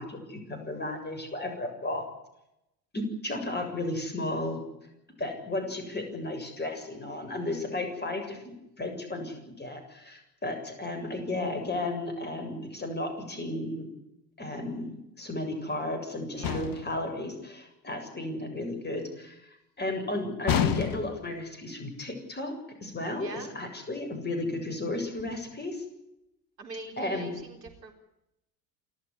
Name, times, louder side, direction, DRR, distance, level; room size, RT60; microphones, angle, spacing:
voice 1, 0.0-2.1 2.9-4.6 5.2-13.9 14.4-19.4 19.8-22.5 22.8-25.8 27.0-27.3, left 2 dB, 20° left, 6 dB, 7.5 m, -34 dB
sound 1, 16.4-17.0 20.5-21.3, left 8 dB, 40° left, 2.0 m, -28 dB
voice 2, 23.2-23.5 26.6-27.9, right 3 dB, 75° right, 3 dB, 4.1 m, -43 dB
29.0 x 13.0 x 9.9 m, 0.86 s
figure-of-eight pair, 65°, 50 cm